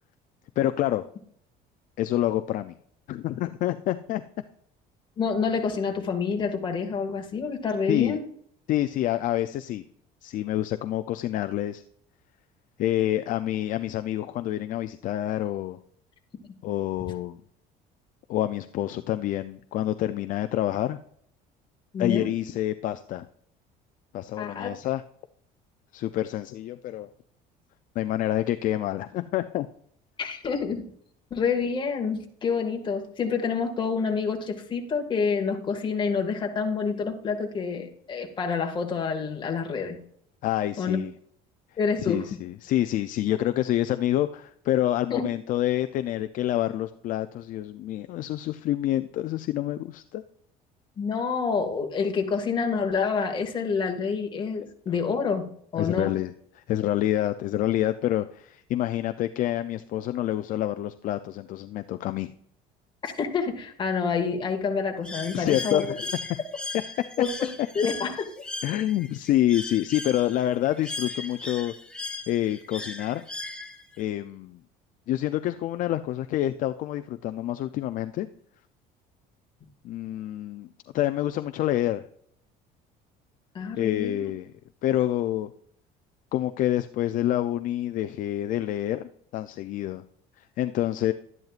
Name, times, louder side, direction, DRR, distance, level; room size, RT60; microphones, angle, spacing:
voice 1, 0.6-1.0 2.0-2.8 3.1-4.2 7.9-8.2 8.7-9.8 10.2-11.8 12.8-15.8 16.6-17.4 18.3-21.0 22.0-23.3 24.1-25.0 25.9-27.1 28.0-29.7 40.4-41.1 42.0-50.2 55.8-62.3 65.3-66.2 68.6-71.7 72.3-73.2 74.0-74.6 75.1-78.3 79.8-80.7 80.9-82.0 83.8-84.5 84.8-85.5 86.3-90.0 90.4-91.1, left 13 dB, 55° left, 10 dB, 0.5 m, -27 dB
voice 2, 5.2-8.2 21.9-22.3 24.4-24.7 30.2-30.9 31.3-40.0 40.8-41.0 41.8-42.3 45.1-45.2 51.0-56.1 63.0-65.9 67.2-67.3 67.8-68.1 83.5-84.3, left 5 dB, 30° left, 2 dB, 2.0 m, -28 dB
Bird, 65.0-74.0, left 2 dB, 5° left, 1.0 m, -38 dB
12.0 x 11.0 x 2.5 m, 0.64 s
cardioid pair, 145°, 17 cm